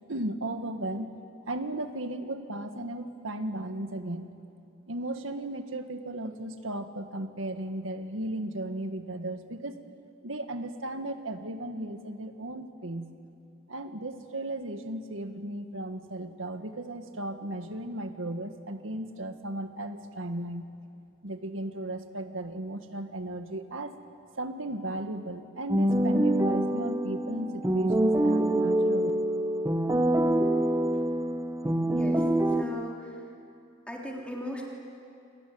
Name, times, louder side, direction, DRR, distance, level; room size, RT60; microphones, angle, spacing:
voice 1, 0.1-1.1 1.5-4.3 4.9-9.8 10.2-13.1 13.7-20.6 21.2-23.9 24.3-29.1, right 1 dB, 80° right, 7 dB, 1.7 m, -35 dB
sound 1, 25.7-32.6, right 1 dB, 15° right, 1.2 m, -25 dB
voice 2, 31.9-33.2 33.9-34.6, equal, 5° left, -2 dB, 3.3 m, -38 dB
28.0 x 20.0 x 9.5 m, 2.5 s
head